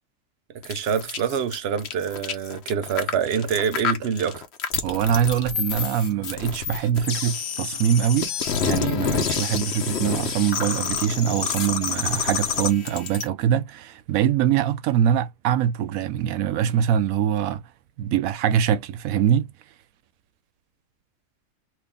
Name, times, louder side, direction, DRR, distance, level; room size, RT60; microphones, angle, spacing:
sound 1, 0.6-13.3, left 7 dB, 55° left, 1.0 m, -28 dB
voice 1, 0.6-4.4, right 7 dB, 55° right, 0.9 m, -26 dB
voice 2, 4.8-8.4 8.6-17.6 18.0-19.5, right 9 dB, 90° right, 1.0 m, -23 dB
3.0 x 2.7 x 3.5 m
omnidirectional pair, 1.4 m